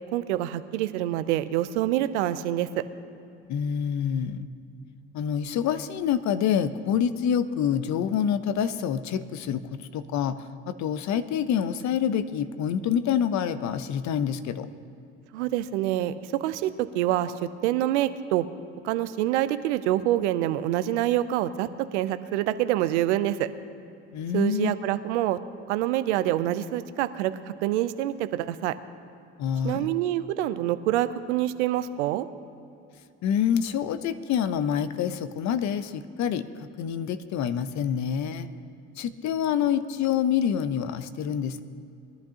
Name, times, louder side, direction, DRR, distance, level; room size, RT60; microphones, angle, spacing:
voice 1, 0.1-2.9 15.3-18.5 18.8-23.5 24.3-25.4 25.7-28.8 29.6-32.3, right 13 dB, 85° right, 13 dB, 0.6 m, -26 dB
voice 2, 3.5-4.5 5.1-14.7 24.1-24.8 29.4-29.9 33.2-36.5 36.8-38.5 39.0-41.6, left 8 dB, 55° left, 13 dB, 0.7 m, -27 dB
21.5 x 11.5 x 2.9 m, 2.6 s
hypercardioid pair, 65°, 34 cm